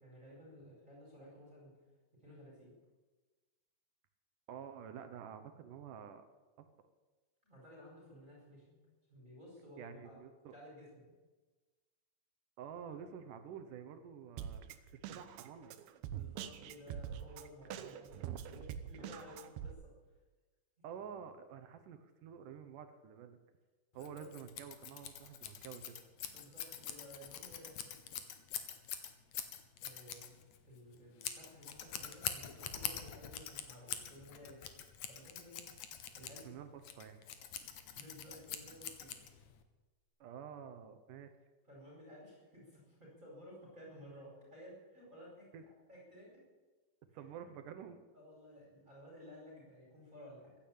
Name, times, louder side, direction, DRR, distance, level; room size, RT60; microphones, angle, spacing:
voice 1, 0.0-1.7 2.2-2.7 7.4-8.8 9.1-10.2 10.5-11.1 16.1-19.9 23.9-24.3 26.3-27.9 29.8-34.7 35.1-35.6 35.9-36.5 37.5-39.2 41.7-46.4 47.1-47.2 48.1-50.6, equal, 20° right, -4 dB, 5.0 m, -55 dB
voice 2, 4.5-6.3 6.6-6.7 9.8-10.6 12.6-15.8 20.8-23.4 23.9-26.0 36.2-37.2 40.2-41.3 45.5-45.6 47.1-48.1, right 8 dB, 70° right, 9 dB, 2.3 m, -49 dB
Drum kit, 14.4-19.7, right 9 dB, 85° right, 2.8 m, -44 dB
Scissors, 24.0-39.6, left 9 dB, 65° left, 2.1 m, -45 dB
15.5 x 10.5 x 8.7 m, 1.3 s
omnidirectional pair, 4.4 m